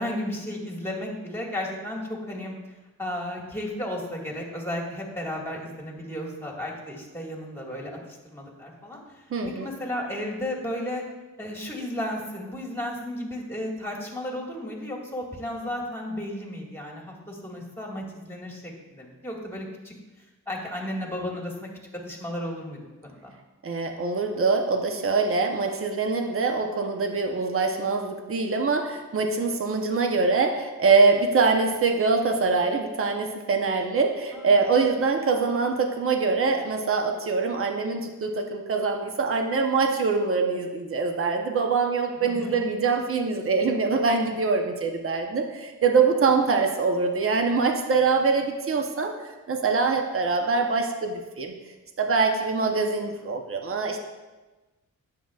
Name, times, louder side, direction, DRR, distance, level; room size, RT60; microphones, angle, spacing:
voice 1, 0.0-2.5 3.0-9.2 9.6-11.0 11.4-21.7 22.1-23.3 34.3-34.6 42.2-42.7, left 1 dB, 10° left, -1 dB, 1.9 m, -34 dB
voice 2, 9.3-9.7 23.6-51.5 52.0-54.0, right 4 dB, 45° right, 4 dB, 0.9 m, -24 dB
9.8 x 7.6 x 2.4 m, 1.2 s
cardioid pair, 85°, 31 cm